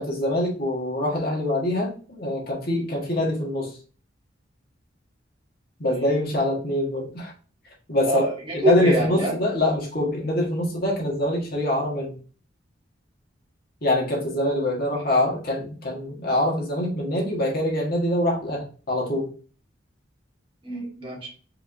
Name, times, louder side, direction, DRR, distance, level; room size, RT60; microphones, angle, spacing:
voice 1, 0.0-3.7 5.8-7.3 7.9-8.2 8.5-12.2 13.8-19.3, left 1 dB, 55° left, -2 dB, 1.5 m, -24 dB
voice 2, 8.0-9.3 20.6-21.3, right 1 dB, 30° right, -3 dB, 1.9 m, -25 dB
4.9 x 3.3 x 2.6 m, 0.39 s
head